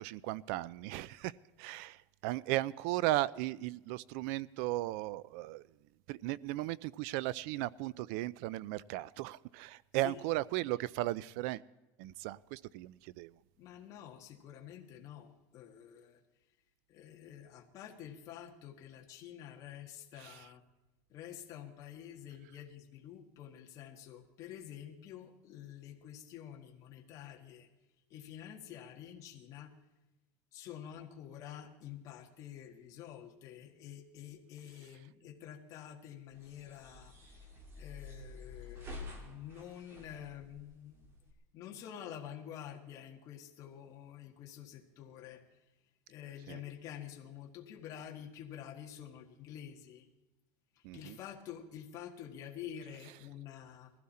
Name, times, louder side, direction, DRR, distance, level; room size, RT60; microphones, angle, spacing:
voice 1, 0.0-1.3 1.6-2.0 2.2-5.6 6.1-11.6 12.0-13.3 20.2-20.4 46.5-46.6 50.8-51.2, right 17 dB, 70° right, 0.5 m, -36 dB
voice 2, 13.6-16.2 16.9-20.6 21.1-27.7 28.1-29.7 30.5-37.5 37.8-41.1 41.5-45.4 46.1-50.1 50.9-53.9, left 10 dB, 45° left, 1.7 m, -48 dB
sound 1, 36.3-41.3, left 2 dB, 30° right, 2.6 m, -49 dB
20.5 x 15.5 x 4.3 m
cardioid pair, 160°, 8 cm